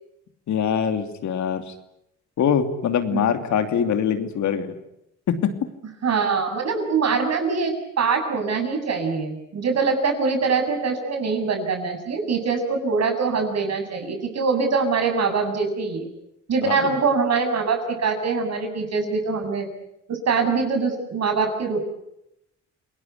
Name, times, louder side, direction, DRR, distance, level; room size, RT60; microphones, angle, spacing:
voice 1, 0.5-1.7 2.4-4.8 5.3-5.5 16.6-16.9, left 8 dB, 70° left, 8 dB, 2.9 m, -23 dB
voice 2, 6.0-16.1 16.5-19.7 20.1-21.9, right 4 dB, 60° right, 5 dB, 7.6 m, -23 dB
29.0 x 20.0 x 9.5 m, 0.83 s
cardioid pair, 90°, 30 cm